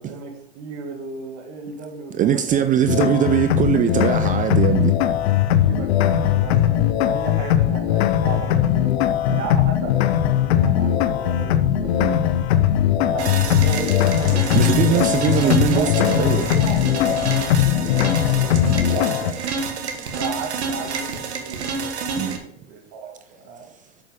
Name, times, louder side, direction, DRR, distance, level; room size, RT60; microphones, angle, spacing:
voice 1, 0.0-2.9 5.6-12.1 13.1-19.6 20.1-23.7, right 4 dB, 50° right, 2.1 m, -34 dB
voice 2, 2.1-5.0 9.3-9.4 12.0-12.2 14.5-16.4 22.2-22.4, right 9 dB, 25° right, 0.5 m, -21 dB
sound 1, 2.9-19.3, left 11 dB, 75° left, 0.8 m, -20 dB
sound 2, 5.0-18.9, left 8 dB, 35° left, 0.9 m, -34 dB
sound 3, 13.2-22.4, right 4 dB, 90° right, 1.7 m, -29 dB
8.2 x 6.7 x 3.6 m
hypercardioid pair, 115°, 33 cm